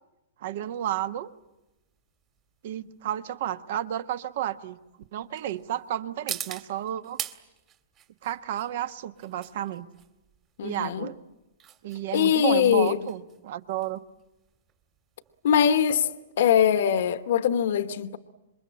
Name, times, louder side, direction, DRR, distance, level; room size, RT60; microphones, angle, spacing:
voice 1, 0.4-1.3 2.6-4.8 5.1-7.2 8.2-9.8 10.6-11.2 11.8-14.0, right 12 dB, 55° right, 1.2 m, -32 dB
sound 1, 0.7-17.3, right 9 dB, 30° right, 2.1 m, -44 dB
voice 2, 10.6-11.1 12.1-13.0 15.4-16.1 16.4-18.2, left 9 dB, 65° left, 1.0 m, -22 dB
27.0 x 22.5 x 8.8 m
hypercardioid pair, 140°, 0 cm